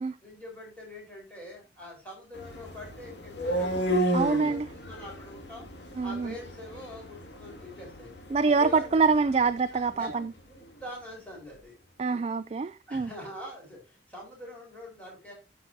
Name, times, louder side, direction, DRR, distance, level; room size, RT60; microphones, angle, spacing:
voice 1, 0.2-5.7 6.0-8.1 8.4-9.0 9.7-10.1 10.5-11.8 12.1-12.3 12.9-15.3, left 1 dB, 5° left, -3 dB, 4.3 m, -44 dB
sound 1, 2.3-10.3, right 1 dB, 75° left, 2.2 m, -34 dB
voice 2, 4.1-4.7 6.0-6.3 8.3-10.3 12.0-13.1, right 4 dB, 35° right, 11 dB, 0.3 m, -25 dB
12.0 x 5.9 x 2.7 m, 0.27 s
head